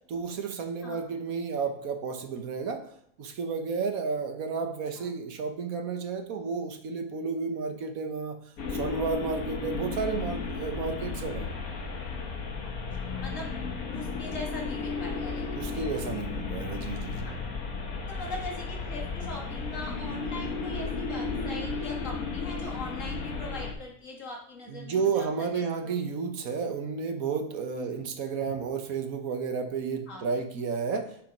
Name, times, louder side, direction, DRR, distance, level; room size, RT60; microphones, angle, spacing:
voice 1, 0.1-2.8 3.2-8.4 8.7-11.5 15.6-17.3 24.7-31.1, right 5 dB, 80° right, 6 dB, 1.5 m, -32 dB
voice 2, 0.8-1.2 4.9-5.1 12.6-12.7 13.0-13.6 13.9-15.8 17.2-17.4 18.1-26.0 27.8-28.1 30.1-30.2, left 2 dB, 65° left, -2 dB, 2.3 m, -41 dB
sound 1, 8.6-23.7, left 4 dB, 85° left, 1.7 m, -34 dB
7.5 x 5.7 x 5.2 m, 0.68 s
omnidirectional pair, 1.5 m